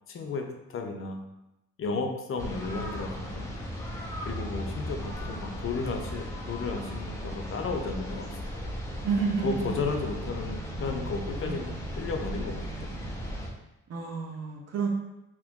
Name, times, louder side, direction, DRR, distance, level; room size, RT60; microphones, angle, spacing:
voice 1, 0.1-0.4 0.7-1.2 1.8-3.5 4.3-8.4 9.4-12.9, left 4 dB, 45° left, 3 dB, 0.6 m, -33 dB
sound 1, 2.4-13.5, equal, 10° left, 0.7 m, -36 dB
voice 2, 9.0-9.8 11.4-11.8 13.9-14.9, right 5 dB, 55° right, 0 dB, 0.7 m, -30 dB
2.9 x 2.5 x 3.5 m, 0.90 s
cardioid pair, 90°, 30 cm